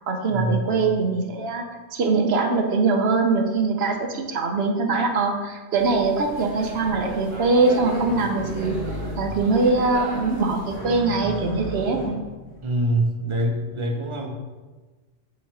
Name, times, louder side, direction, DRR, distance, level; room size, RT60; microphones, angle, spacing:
voice 1, 0.1-1.6 1.9-8.7 9.2-12.2, right 3 dB, 60° right, 4 dB, 0.9 m, -22 dB
sound 1, 5.8-10.9, left 1 dB, 90° right, 2.1 m, -36 dB
sound 2, 6.7-7.0 7.7-9.4 9.7-10.0 10.7-12.6 13.4-13.5, right 1 dB, 85° left, 1.9 m, -34 dB
voice 2, 12.6-14.3, right 1 dB, 30° right, 1 dB, 0.6 m, -24 dB
7.1 x 3.0 x 4.7 m, 1.3 s
omnidirectional pair, 1.3 m